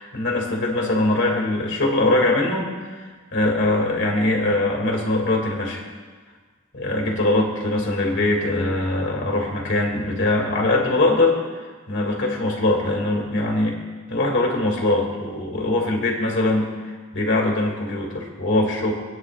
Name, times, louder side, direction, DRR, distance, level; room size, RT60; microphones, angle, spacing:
voice 1, 0.0-5.8 6.7-11.3 11.9-13.8 14.1-18.9, left 2 dB, 55° left, 0 dB, 2.3 m, -22 dB
27.5 x 9.4 x 2.5 m, 1.4 s
head